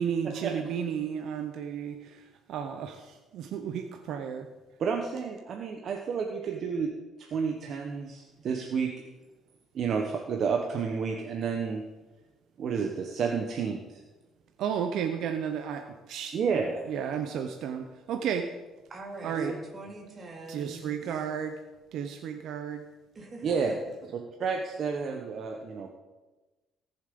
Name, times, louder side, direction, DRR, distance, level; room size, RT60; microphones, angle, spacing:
voice 1, 0.0-4.5 14.6-16.3 16.9-18.5 19.2-19.5 20.5-21.6 21.9-22.8, right 8 dB, 70° right, 6 dB, 0.9 m, -33 dB
voice 2, 4.8-6.9 7.2-8.9 9.7-11.8 12.6-13.8 16.3-16.9 19.4-19.5 23.4-23.8 24.1-26.0, right 5 dB, 50° right, 2 dB, 1.3 m, -30 dB
voice 3, 18.9-21.3 23.1-23.7, right 2 dB, 30° right, 1 dB, 2.8 m, -43 dB
18.0 x 7.3 x 5.4 m, 1.1 s
cardioid pair, 135°, 0 cm